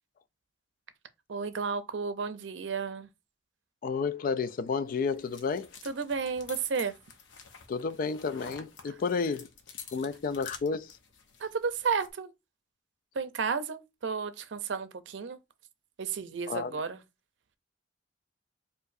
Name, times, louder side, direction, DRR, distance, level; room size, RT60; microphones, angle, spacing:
voice 1, 1.3-3.1 5.9-6.9 11.4-12.3 13.1-15.4 16.0-17.0, right 5 dB, 80° right, 0.5 m, -32 dB
voice 2, 3.8-5.7 7.7-9.5 9.9-11.0 16.5-16.8, left 5 dB, 50° left, 0.3 m, -31 dB
sound 1, 4.7-12.1, left 6 dB, 85° left, 0.7 m, -49 dB
4.6 x 2.5 x 2.5 m
head